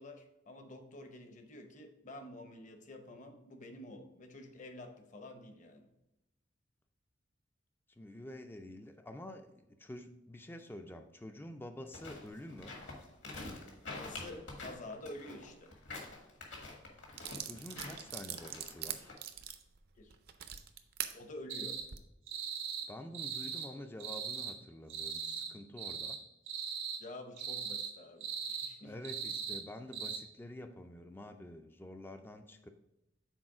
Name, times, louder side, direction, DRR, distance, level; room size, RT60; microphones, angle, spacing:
voice 1, 0.0-5.9 14.0-15.7 20.0-20.1 21.1-21.8 27.0-28.9, left 1 dB, 40° left, 6 dB, 0.7 m, -49 dB
voice 2, 8.0-12.8 17.4-19.1 22.9-26.2 28.8-32.7, left 1 dB, 10° left, 7 dB, 0.3 m, -48 dB
sound 1, 11.8-19.1, left 2 dB, 70° left, 1.6 m, -46 dB
sound 2, 16.6-16.7 17.2-21.1 21.7-22.0, right 10 dB, 55° right, 0.5 m, -42 dB
sound 3, 21.5-21.8 22.3-22.9 23.1-23.7 24.0-24.5 24.9-25.5 25.8-26.2 26.5-27.0 27.4-27.9 28.2-28.7 29.0-29.6 29.9-30.2, right 7 dB, 85° right, 1.3 m, -39 dB
6.3 x 4.2 x 4.8 m, 0.92 s
head